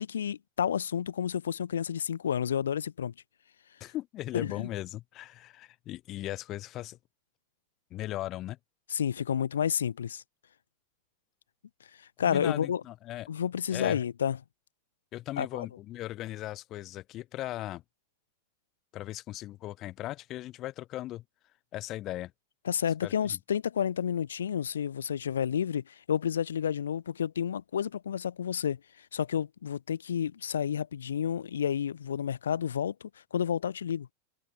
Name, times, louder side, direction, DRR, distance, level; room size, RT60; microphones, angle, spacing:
voice 1, 0.0-3.1 4.3-4.7 8.9-10.2 12.0-12.8 13.3-14.4 15.4-15.7 22.6-34.1, left 8 dB, 65° left, 1.2 m, -30 dB
voice 2, 3.8-7.0 7.9-8.6 12.2-13.3 13.7-14.0 15.1-17.8 18.9-21.2 21.7-22.3 23.0-23.4, left 15 dB, 35° left, 3.8 m, -38 dB
figure-of-eight pair, 90°, 0 cm